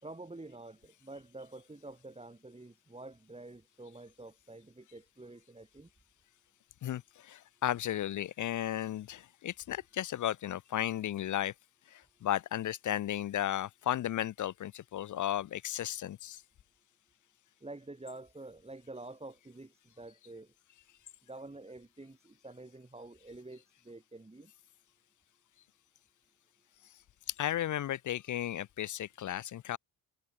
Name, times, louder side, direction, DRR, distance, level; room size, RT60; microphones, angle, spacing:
voice 1, 0.0-5.9 17.6-20.5 21.2-24.5, right 2 dB, 15° right, 5.2 m, -48 dB
voice 2, 6.8-11.5 11.9-16.4 27.4-29.8, left 12 dB, 45° left, 0.5 m, -34 dB
cardioid pair, 115°, 42 cm